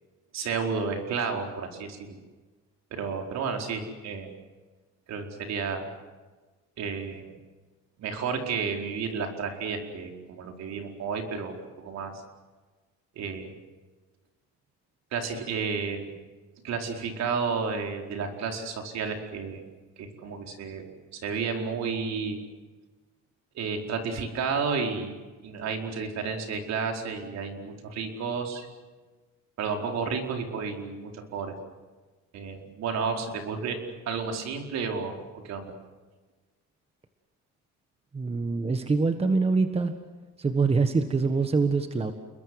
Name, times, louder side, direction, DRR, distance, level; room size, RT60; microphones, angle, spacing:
voice 1, 0.3-2.2 2.9-4.3 5.1-5.9 6.8-7.3 8.0-12.1 13.2-13.5 15.1-16.1 16.6-19.6 20.0-20.9 21.1-22.4 23.5-25.2 25.4-28.7 29.6-31.5 32.3-33.8 34.1-35.7, right 5 dB, 60° right, 3 dB, 4.7 m, -31 dB
voice 2, 38.1-39.9 40.4-42.1, right 4 dB, 20° right, 8 dB, 1.5 m, -24 dB
30.0 x 21.5 x 7.9 m, 1.3 s
cardioid pair, 125°, 31 cm